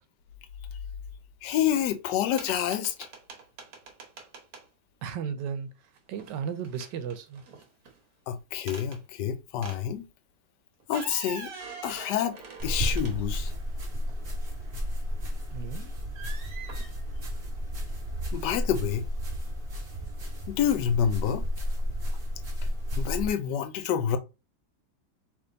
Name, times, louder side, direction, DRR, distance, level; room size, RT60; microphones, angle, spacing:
voice 1, 1.4-2.9 8.3-10.1 10.9-11.5 11.8-12.4 12.6-13.5 18.3-19.1 20.5-21.5 23.0-24.2, left 9 dB, 80° left, 1.2 m, -28 dB
sound 1, 2.4-4.6 6.0-6.4 6.6-8.0 8.7-9.0 9.6-9.8 10.8-13.5 14.1-14.2 16.1-16.9, right 4 dB, 60° right, 1.4 m, -44 dB
voice 2, 5.0-5.7 6.1-7.4 15.5-15.9, right 7 dB, 80° right, 1.3 m, -34 dB
sound 2, 12.6-23.3, equal, 40° right, 1.2 m, -32 dB
3.5 x 3.0 x 3.9 m
omnidirectional pair, 1.8 m